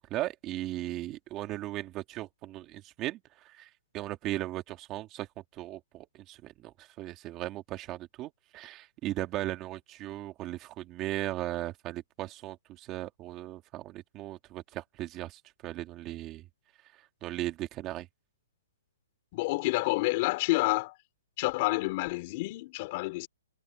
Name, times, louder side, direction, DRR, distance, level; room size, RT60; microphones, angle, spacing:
voice 1, 0.1-16.5 17.2-18.1, right 15 dB, 15° right, 2.4 m, -37 dB
voice 2, 19.3-20.9 21.4-23.3, left 22 dB, 25° left, 5.0 m, -29 dB
hypercardioid pair, 175°, 0 cm